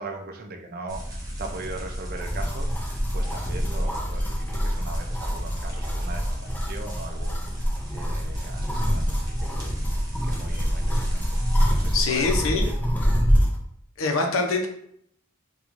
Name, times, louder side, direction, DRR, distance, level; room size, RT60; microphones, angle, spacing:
voice 1, 0.0-2.7 3.1-7.4 7.9-9.8 10.2-11.4 11.7-12.3 12.6-12.7 13.0-13.2, right 3 dB, 45° right, 3 dB, 0.4 m, -39 dB
sound 1, 0.9-11.9, equal, 20° right, 0.8 m, -35 dB
sound 2, 2.2-13.6, equal, 10° left, 0.5 m, -25 dB
voice 2, 11.9-12.7 14.0-14.7, left 3 dB, 70° left, 2 dB, 0.6 m, -24 dB
4.5 x 2.3 x 2.5 m, 0.70 s
head